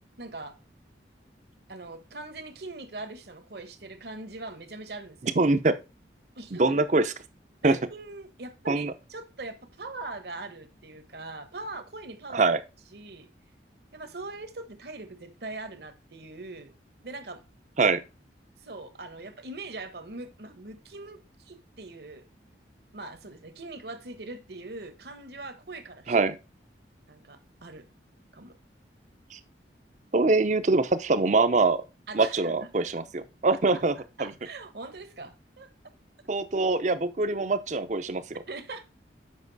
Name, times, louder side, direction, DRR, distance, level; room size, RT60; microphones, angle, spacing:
voice 1, 0.2-0.6 1.7-5.4 6.4-6.6 7.6-12.5 12.9-13.3 13.9-16.7 17.0-17.4 18.6-22.2 22.9-26.2 27.1-27.9 28.3-28.6 32.1-32.7 33.5-33.8 34.2-35.7 38.5-38.8, right 2 dB, 60° right, 1.1 m, -41 dB
voice 2, 5.4-5.7 6.6-7.1 7.6-7.8 8.7-8.9 12.3-12.6 17.8-18.0 26.1-26.4 29.3-29.4 30.1-31.8 32.1-33.9 34.2-34.3 36.3-38.4, right 3 dB, 40° right, 0.6 m, -24 dB
7.4 x 5.3 x 4.0 m
head